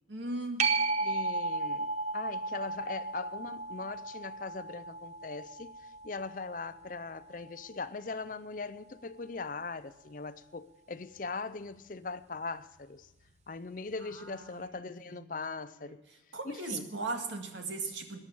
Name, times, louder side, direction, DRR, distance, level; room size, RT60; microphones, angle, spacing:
voice 1, 0.1-0.7 14.0-14.8 15.1-15.3 15.8-16.0 16.3-18.2, right 3 dB, 80° right, 2.0 m, -38 dB
sound 1, 0.6-7.8 13.3-13.4, right 3 dB, 35° right, 1.0 m, -35 dB
voice 2, 1.0-5.8 6.0-13.1 13.5-16.0 16.4-16.9, left 4 dB, 45° left, 0.6 m, -40 dB
14.0 x 9.9 x 8.6 m
head